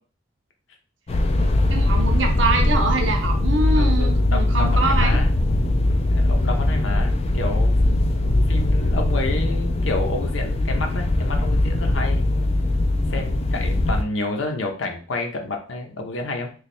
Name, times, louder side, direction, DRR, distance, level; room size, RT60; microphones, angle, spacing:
sound 1, 1.1-14.0, left 1 dB, 35° left, 0.4 m, -20 dB
voice 1, 1.4-5.2 6.4-6.7, right 3 dB, 70° right, 2 dB, 0.8 m, -25 dB
voice 2, 3.7-5.3 6.1-7.7 8.0-8.2 8.5-12.3 13.1-16.5, left 2 dB, 85° left, 3 dB, 0.7 m, -30 dB
3.2 x 2.3 x 4.2 m, 0.41 s
head